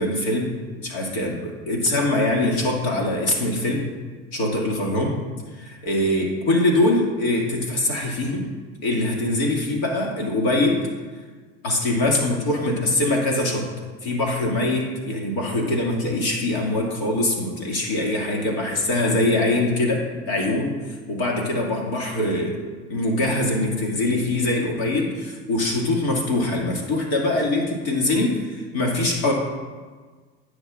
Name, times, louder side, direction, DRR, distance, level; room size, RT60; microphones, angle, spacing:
voice 1, 0.0-3.8 4.3-5.2 5.5-8.5 8.8-10.9 11.6-13.7 14.0-22.6 22.9-29.3, left 2 dB, 80° left, -1 dB, 2.3 m, -23 dB
16.5 x 6.3 x 2.5 m, 1.4 s
supercardioid pair, 85°, 33 cm